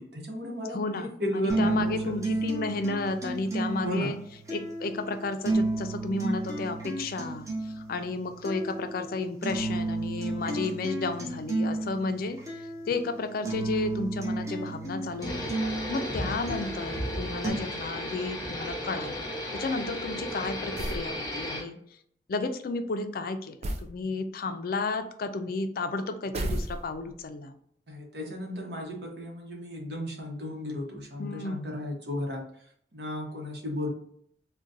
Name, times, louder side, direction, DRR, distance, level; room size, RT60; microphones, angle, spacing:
voice 1, 0.0-2.0 3.8-4.1 27.9-32.4 32.9-33.9, left 1 dB, 65° right, 0 dB, 0.9 m, -34 dB
voice 2, 0.7-4.2 4.5-15.5 15.9-19.2 19.6-21.8 22.3-27.6 31.2-31.7, left 3 dB, 55° left, 8 dB, 0.4 m, -32 dB
sound 1, 1.5-17.5, right 2 dB, 20° right, 0.7 m, -32 dB
sound 2, 15.2-21.6, equal, 25° left, 0.9 m, -34 dB
sound 3, 20.8-21.1 23.6-24.0 26.3-27.1, right 1 dB, 35° right, 0.4 m, -32 dB
3.9 x 2.2 x 2.5 m, 0.67 s
head